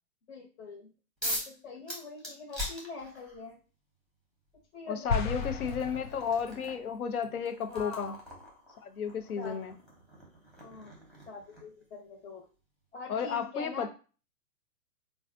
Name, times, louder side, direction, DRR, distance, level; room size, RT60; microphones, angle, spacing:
voice 1, 0.3-0.9 1.2-3.6 4.7-5.7 7.7-8.2 9.4-9.6 10.6-10.9 11.3-12.4 12.9-13.9, left 4 dB, 50° left, -1 dB, 1.2 m, -44 dB
sound 1, 1.2-1.6 1.9-3.4 4.5-4.6 5.2-11.8, left 1 dB, ahead, 0.8 m, -42 dB
voice 2, 4.9-8.2 8.8-9.7 13.1-13.9, left 6 dB, 70° left, 8 dB, 0.8 m, -33 dB
sound 2, 5.1-6.7, left 5 dB, 35° left, 0.4 m, -34 dB
4.0 x 2.3 x 2.6 m, 0.35 s
hypercardioid pair, 130°, 45 cm